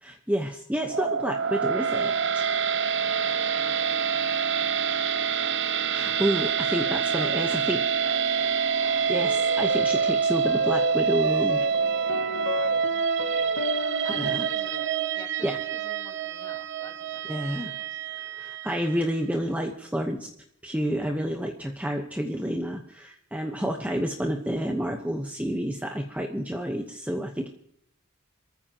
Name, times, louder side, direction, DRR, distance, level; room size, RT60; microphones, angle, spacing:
voice 1, 0.0-2.5 5.9-7.8 9.1-11.6 14.2-14.5 15.4-15.6 17.3-17.7 18.3-20.3 20.6-27.5, equal, 5° right, 3 dB, 1.0 m, -29 dB
sound 1, 0.8-19.1, right 6 dB, 55° right, 0.7 m, -26 dB
voice 2, 3.0-5.7 6.8-9.2 12.5-12.8 13.1-13.5 14.0-18.0, left 2 dB, 20° left, 2 dB, 2.9 m, -48 dB
sound 2, 9.2-17.8, left 3 dB, 75° left, 2.1 m, -36 dB
27.0 x 14.5 x 2.9 m, 0.71 s
head